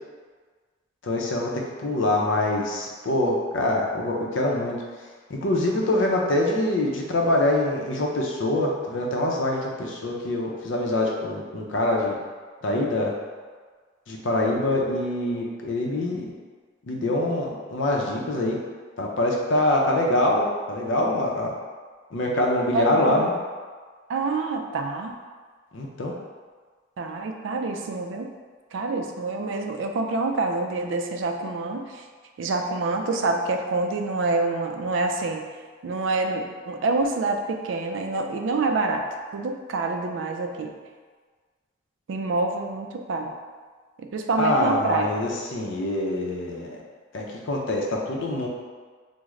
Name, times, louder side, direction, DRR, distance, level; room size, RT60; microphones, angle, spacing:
voice 1, 1.0-1.5 1.8-4.7 5.3-12.2 12.6-13.1 14.1-16.3 16.9-18.6 19.0-21.5 22.1-23.3 25.7-26.1 44.4-46.8 47.1-48.5, left 1 dB, 70° left, -1 dB, 0.5 m, -24 dB
voice 2, 22.7-23.2 24.1-25.1 27.0-28.3 28.7-32.0 32.4-35.5 35.8-39.0 39.3-40.7 42.1-43.3 44.0-45.1, right 3 dB, 70° right, 4 dB, 0.3 m, -27 dB
3.1 x 2.1 x 3.6 m, 1.5 s
head